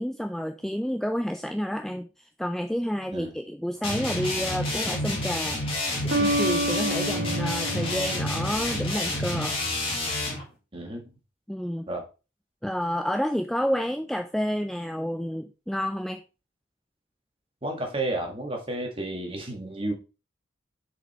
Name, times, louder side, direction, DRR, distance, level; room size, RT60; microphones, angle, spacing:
voice 1, 0.0-5.6 6.2-9.6 11.5-11.9 12.6-16.2, equal, ahead, 6 dB, 0.3 m, -29 dB
sound 1, 3.8-10.4, left 1 dB, 30° left, 2.4 m, -29 dB
sound 2, 4.9-5.4 6.1-9.0, right 1 dB, 55° right, 1.1 m, -29 dB
voice 2, 10.7-11.0 11.9-12.0 17.6-19.9, right 1 dB, 25° right, 3 dB, 1.6 m, -31 dB
6.5 x 5.0 x 4.3 m, 0.31 s
head